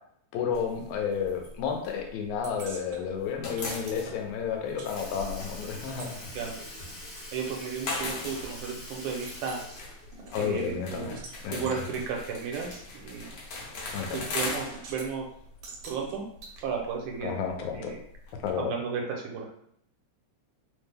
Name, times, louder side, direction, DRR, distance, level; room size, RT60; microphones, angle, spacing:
voice 1, 0.3-6.3 10.3-11.1 11.4-11.9 13.9-14.3 17.2-17.9 18.4-18.8, left 7 dB, 85° left, 3 dB, 2.1 m, -31 dB
sound 1, 0.5-2.8 3.1-18.5, left 3 dB, 65° left, 1.9 m, -40 dB
sound 2, 2.4-4.9 5.2-8.2 8.6-8.7 9.0-9.6 10.1-11.4 11.7-11.8 12.6-12.7 13.9-14.2 14.5-15.1 15.6-16.6, right 3 dB, 70° right, 1.4 m, -47 dB
Sink (filling or washing) / Liquid, 4.8-10.9 11.3-11.4 12.9-13.0 14.0-14.1 14.9-15.1 15.9-16.0, left 1 dB, 45° left, 0.7 m, -45 dB
voice 2, 7.3-9.6 10.4-11.1 11.5-13.3 14.1-15.3 15.8-16.2 16.6-17.4 17.7-18.0 18.6-19.5, right 6 dB, 85° right, 0 dB, 2.2 m, -34 dB
5.0 x 2.1 x 3.3 m, 0.68 s
omnidirectional pair, 3.4 m